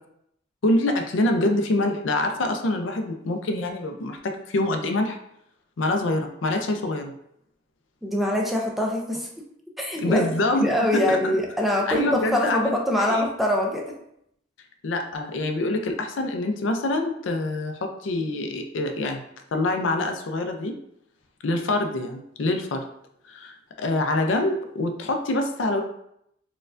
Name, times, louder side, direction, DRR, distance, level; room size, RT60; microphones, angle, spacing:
voice 1, 0.6-5.2 5.8-7.1 10.0-11.3 11.9-13.3 14.8-19.2 19.5-20.7 21.4-22.8 23.3-25.8, left 2 dB, 75° left, 4 dB, 0.5 m, -25 dB
voice 2, 8.0-9.3 9.8-13.9, left 1 dB, ahead, -1 dB, 0.4 m, -24 dB
4.2 x 2.3 x 2.5 m, 0.75 s
head